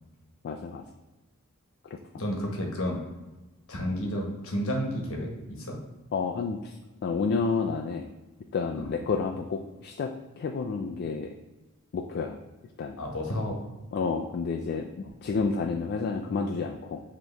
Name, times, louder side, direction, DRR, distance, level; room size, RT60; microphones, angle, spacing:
voice 1, 0.4-0.8 6.1-6.7 7.0-8.1 8.5-10.1 10.4-11.3 11.9-12.4 12.8-13.0 13.9-14.9 15.2-17.0, left 4 dB, 50° left, 2 dB, 0.3 m, -30 dB
voice 2, 2.1-3.0 3.7-5.7 8.7-8.9 13.0-13.6, equal, 65° left, 0 dB, 1.0 m, -31 dB
4.4 x 3.0 x 3.3 m, 1.1 s
head